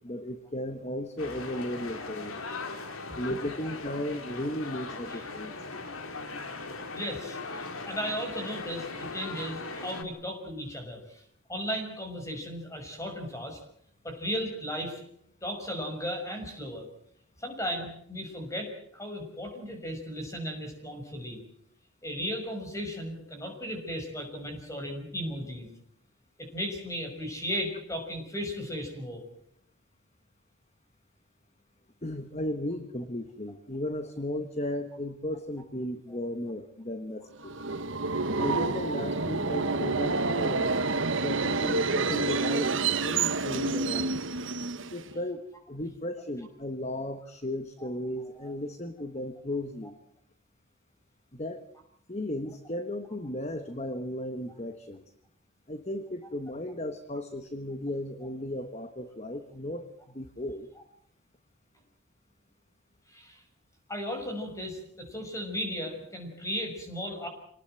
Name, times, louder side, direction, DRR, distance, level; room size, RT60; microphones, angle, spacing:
voice 1, 0.0-2.4 3.2-5.5 32.0-37.6 38.4-40.8 41.2-42.8 43.0-44.2 44.9-49.9 51.3-51.7 52.1-55.0 55.7-60.7, left 1 dB, 30° left, 9 dB, 1.3 m, -35 dB
sound 1, 1.2-10.0, left 3 dB, 85° left, 2.6 m, -39 dB
voice 2, 6.9-13.6 14.0-15.0 15.4-16.9 17.4-21.4 22.0-25.7 26.4-29.2 47.8-47.9 48.4-48.5 63.1-63.4 63.9-67.3, equal, 15° left, 4 dB, 5.9 m, -36 dB
Subway metro underground, 37.4-45.2, right 3 dB, 65° right, 1.3 m, -28 dB
26.5 x 19.0 x 7.7 m, 0.68 s
head